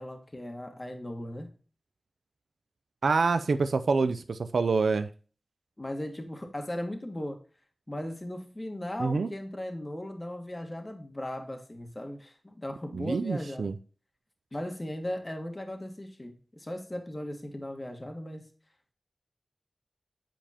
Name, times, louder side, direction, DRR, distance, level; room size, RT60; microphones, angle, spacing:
voice 1, 0.0-1.5 5.8-7.4 7.9-13.7 14.5-18.5, left 1 dB, 30° left, 4 dB, 1.6 m, -37 dB
voice 2, 3.0-5.1 9.0-9.3 12.9-13.7, right 4 dB, 90° right, 10 dB, 0.4 m, -26 dB
8.8 x 5.0 x 2.8 m, 0.38 s
cardioid pair, 40°, 0 cm